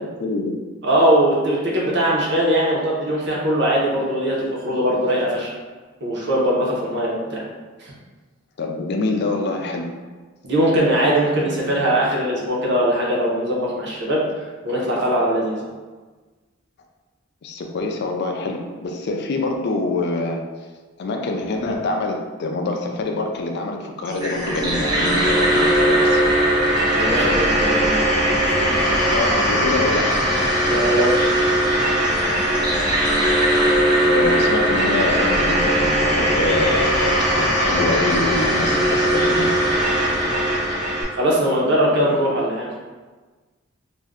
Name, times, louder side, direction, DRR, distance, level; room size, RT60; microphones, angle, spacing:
voice 1, 0.2-0.6 8.6-9.9 11.4-11.7 17.4-20.5 21.0-26.2 28.9-30.2 33.8-39.7 42.0-42.1, left 2 dB, 55° left, 3 dB, 0.4 m, -25 dB
voice 2, 0.8-5.5 6.0-7.4 7.8-7.9 10.4-14.2 14.6-15.6 27.0-28.1 28.5-28.8 30.7-31.4 41.1-42.7, right 1 dB, 60° right, -4 dB, 0.8 m, -21 dB
sound 1, 24.1-41.0, equal, 20° right, 0.5 m, -19 dB
2.5 x 2.2 x 3.5 m, 1.3 s
head